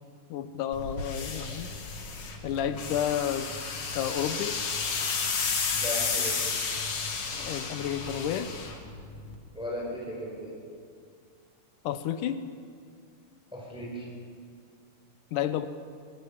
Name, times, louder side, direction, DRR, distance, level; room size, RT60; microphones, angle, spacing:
voice 1, 0.3-1.7 2.4-3.5 4.0-4.6 7.3-8.5 11.8-12.4 15.3-15.7, left 10 dB, 85° left, 11 dB, 2.5 m, -31 dB
sound 1, 0.7-9.3, left 5 dB, 50° left, 2.8 m, -32 dB
voice 2, 5.7-6.3 9.5-10.5 13.5-14.0, equal, ahead, -3 dB, 5.1 m, -36 dB
24.5 x 19.5 x 7.3 m, 2.2 s
omnidirectional pair, 3.6 m